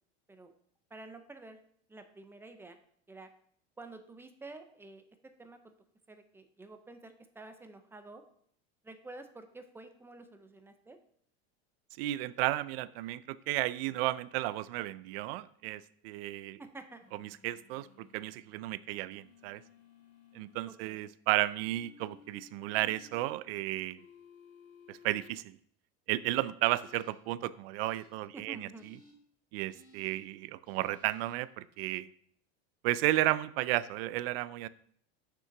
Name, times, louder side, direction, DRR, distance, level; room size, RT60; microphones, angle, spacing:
voice 1, 0.9-1.6 1.9-2.8 3.1-3.3 3.8-5.7 6.1-8.2 8.8-11.0 16.6-17.0 20.7-21.1 28.3-28.9, right 2 dB, 5° right, 8 dB, 0.5 m, -50 dB
voice 2, 12.0-16.6 17.4-19.6 20.3-24.0 24.9-25.6 26.1-28.7 29.5-32.1 32.8-34.7, right 16 dB, 65° right, 17 dB, 0.5 m, -33 dB
sound 1, 17.0-18.2 19.1-20.6 21.6-23.2 24.0-25.3 26.7-27.1 27.8-28.1 28.7-29.1 29.7-30.2 30.6-31.3, left 6 dB, 25° left, 2.5 m, -58 dB
6.7 x 6.2 x 5.8 m, 0.64 s
supercardioid pair, 150°, 33 cm